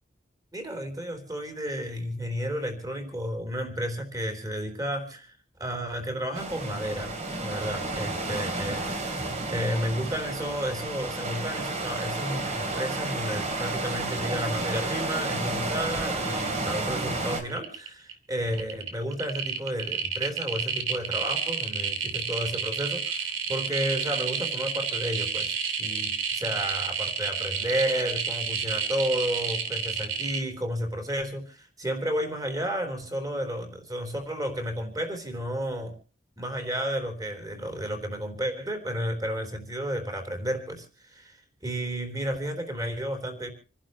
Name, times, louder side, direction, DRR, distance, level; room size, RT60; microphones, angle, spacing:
voice 1, 0.5-7.1 7.4-25.5 25.8-35.9 36.4-43.5, equal, 20° right, 6 dB, 3.6 m, -32 dB
sound 1, 6.3-17.4, right 2 dB, 35° right, 3.0 m, -31 dB
sound 2, 17.0-17.2 17.5-18.1 18.5-30.4, right 7 dB, 90° right, 2.9 m, -30 dB
27.5 x 11.5 x 3.1 m, 0.38 s
head